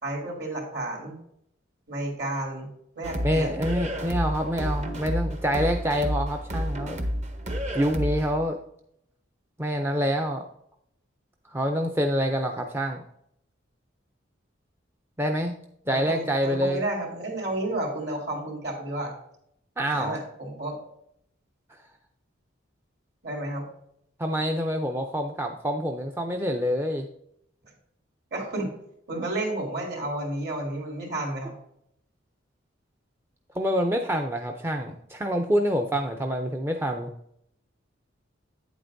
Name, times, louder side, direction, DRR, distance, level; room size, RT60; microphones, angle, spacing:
voice 1, 0.0-1.2 1.9-2.7 3.0-3.5 15.9-19.1 19.9-20.8 23.2-23.7 28.3-28.7 29.1-31.6, right 1 dB, 55° right, -1 dB, 2.8 m, -31 dB
sound 1, 3.0-8.4, equal, 35° right, 0.8 m, -30 dB
voice 2, 3.2-7.0 7.7-8.6 9.6-10.4 11.5-13.0 15.2-15.6 15.9-16.8 19.8-20.2 24.2-27.1 33.5-37.1, equal, 10° right, 4 dB, 0.4 m, -26 dB
8.9 x 7.8 x 2.6 m, 0.73 s
head